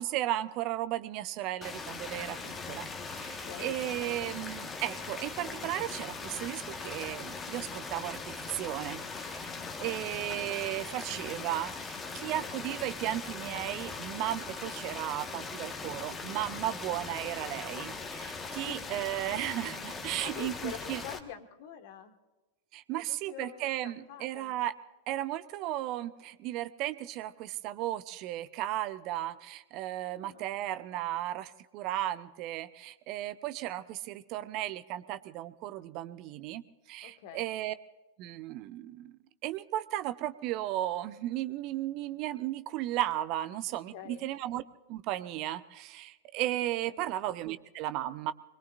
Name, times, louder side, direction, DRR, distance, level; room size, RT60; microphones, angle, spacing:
voice 1, 0.0-9.6 9.8-21.0 22.7-24.7 25.1-37.7 38.2-44.6 44.9-48.3, right 14 dB, 40° right, 14 dB, 0.7 m, -35 dB
sound 1, 1.6-21.2, left 4 dB, 20° left, 1.4 m, -40 dB
voice 2, 3.3-3.7 9.7-10.0 18.5-18.8 20.2-22.2 22.9-24.6 30.1-30.7 37.0-37.4 43.7-44.3 46.8-47.1, left 8 dB, 50° left, 8 dB, 1.6 m, -46 dB
25.5 x 21.5 x 2.5 m, 1.1 s
figure-of-eight pair, 90°, 0 cm